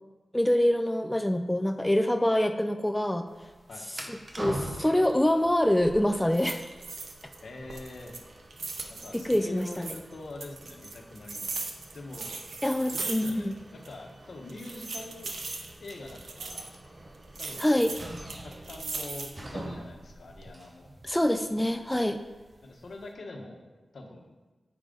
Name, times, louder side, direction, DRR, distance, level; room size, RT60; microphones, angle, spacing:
voice 1, 0.3-3.3 4.1-6.6 9.2-9.9 12.6-13.5 17.6-17.9 21.0-22.2, left 1 dB, 10° left, 6 dB, 0.3 m, -25 dB
sound 1, 3.3-23.1, right 1 dB, 35° right, 0.8 m, -45 dB
sound 2, 5.6-6.0 6.3-7.4 7.7-10.0 10.4-13.6 13.8-13.9 14.5-16.7 17.3-19.5 20.0-20.5, right 4 dB, 80° right, 0.7 m, -39 dB
voice 2, 7.4-8.1 8.9-11.7 11.9-15.3 15.8-16.7 17.4-17.7 18.4-20.9 22.6-24.3, left 2 dB, 70° left, 1 dB, 1.0 m, -44 dB
7.9 x 5.0 x 3.8 m, 1.2 s
wide cardioid pair, 85°, 0 cm